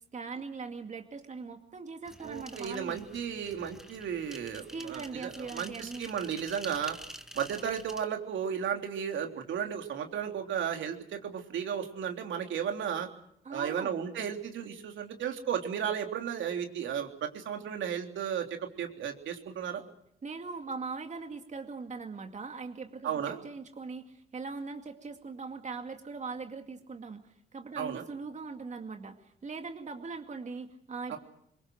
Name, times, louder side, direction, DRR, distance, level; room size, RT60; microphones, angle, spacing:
voice 1, 0.1-3.0 4.7-6.1 13.4-13.9 20.2-31.2, right 4 dB, 35° right, 5 dB, 2.2 m, -41 dB
sound 1, 2.0-8.0, equal, ahead, 1.9 m, -48 dB
voice 2, 2.2-7.0 7.3-13.1 13.5-19.8 23.0-23.4 27.8-28.0 31.1-31.2, right 8 dB, 70° right, 4 dB, 3.4 m, -34 dB
25.0 x 22.5 x 6.4 m, 0.74 s
cardioid pair, 90°, 20 cm